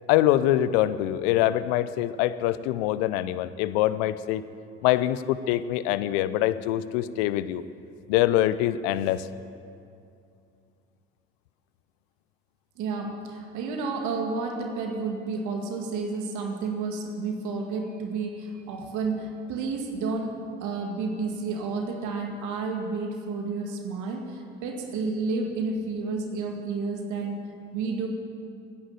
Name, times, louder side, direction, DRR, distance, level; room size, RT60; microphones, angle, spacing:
voice 1, 0.1-4.4 4.8-7.6 8.1-9.3, left 13 dB, 75° left, 15 dB, 0.6 m, -24 dB
voice 2, 12.8-20.3 20.6-27.4 27.7-28.1, right 4 dB, 65° right, 3 dB, 2.1 m, -31 dB
14.0 x 10.5 x 9.2 m, 2.5 s
hypercardioid pair, 55°, 32 cm